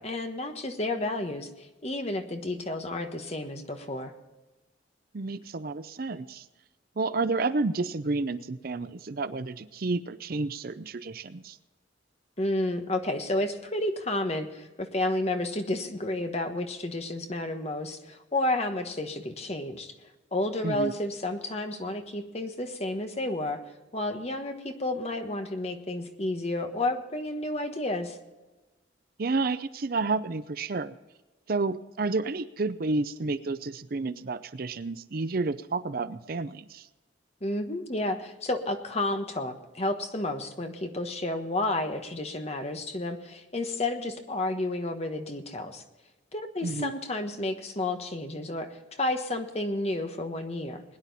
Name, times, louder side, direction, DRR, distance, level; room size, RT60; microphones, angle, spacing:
voice 1, 0.0-4.1 12.4-19.9 20.3-23.6 23.9-28.2 37.4-45.8 46.3-50.8, left 2 dB, 35° left, 6 dB, 1.3 m, -31 dB
voice 2, 5.1-6.4 7.0-11.6 20.6-20.9 29.2-31.0 31.5-36.9 46.6-46.9, right 3 dB, 50° right, 13 dB, 0.5 m, -30 dB
21.0 x 10.0 x 4.1 m, 1.1 s
head